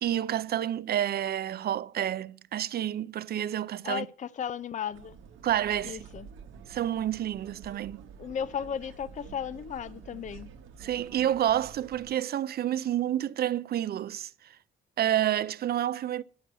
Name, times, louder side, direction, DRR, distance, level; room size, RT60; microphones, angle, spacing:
voice 1, 0.0-4.1 5.4-6.0 6.7-8.0 10.8-14.3 15.0-16.2, right 11 dB, 50° right, 0.5 m, -29 dB
voice 2, 3.8-5.2 5.8-6.3 8.2-10.5, left 8 dB, 40° left, 0.5 m, -35 dB
sound 1, 4.9-12.1, right 6 dB, 80° right, 0.9 m, -49 dB
10.0 x 4.7 x 7.9 m
cardioid pair, 90°, 20 cm